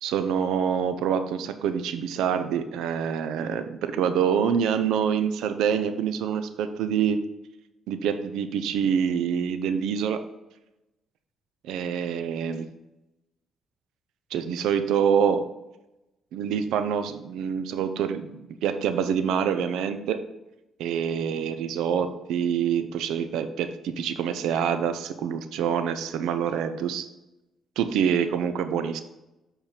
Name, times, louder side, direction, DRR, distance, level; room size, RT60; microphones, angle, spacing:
voice 1, 0.0-7.2 7.9-10.2 11.6-12.7 14.3-15.4 16.3-20.2 20.8-27.1 27.8-29.0, right 7 dB, 85° right, 10 dB, 0.7 m, -26 dB
7.4 x 4.5 x 5.1 m, 0.96 s
cardioid pair, 90°, 0 cm